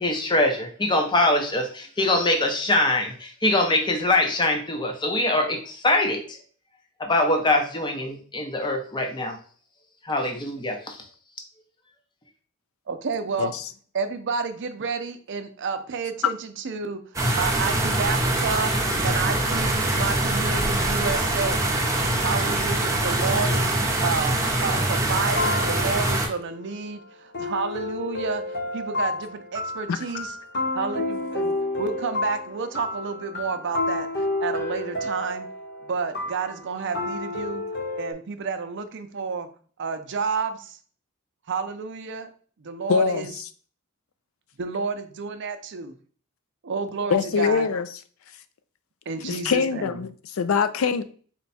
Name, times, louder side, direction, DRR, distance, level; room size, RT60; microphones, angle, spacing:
voice 1, 0.0-6.2 7.0-9.3 10.1-11.0, left 2 dB, 20° left, 0.7 m, -23 dB
voice 2, 12.9-13.5 13.9-18.7 19.0-21.8 22.2-23.7 24.0-28.4 28.7-30.3 30.7-35.5 35.9-37.6 37.9-39.5 39.8-40.8 41.5-42.3 42.6-43.3 44.6-45.9 46.6-47.7 49.1-50.0, right 5 dB, 60° right, 0.5 m, -30 dB
sound 1, 17.1-26.3, right 1 dB, 15° right, 0.8 m, -23 dB
sound 2, 25.3-27.0 27.3-38.1, left 2 dB, 55° left, 1.0 m, -30 dB
voice 3, 42.9-43.3 47.1-47.9 49.2-51.0, left 6 dB, 75° left, 0.4 m, -23 dB
4.4 x 2.3 x 4.0 m
head